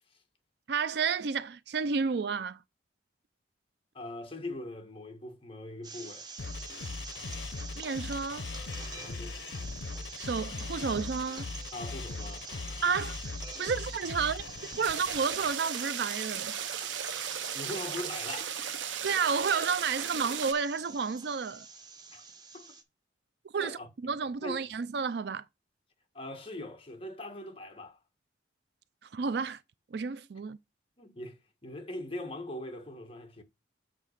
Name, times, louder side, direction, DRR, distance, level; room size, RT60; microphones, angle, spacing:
voice 1, 0.7-2.6 7.7-8.5 10.2-11.5 12.8-13.2 13.6-14.4 14.7-16.5 19.0-21.7 23.5-25.4 29.1-29.6 29.9-30.6, right 5 dB, 60° right, 0.4 m, -31 dB
voice 2, 3.9-6.3 8.9-9.4 11.7-12.8 17.5-18.5 22.1-22.2 22.5-22.8 23.6-23.9 24.4-24.6 26.1-28.0 31.0-33.4, left 1 dB, 30° left, 1.4 m, -41 dB
sound 1, 5.8-22.8, right 4 dB, 20° right, 0.9 m, -46 dB
sound 2, 6.4-15.5, left 4 dB, 80° left, 0.7 m, -40 dB
sound 3, 14.8-20.5, right 9 dB, 85° right, 0.7 m, -36 dB
7.6 x 3.5 x 6.5 m
head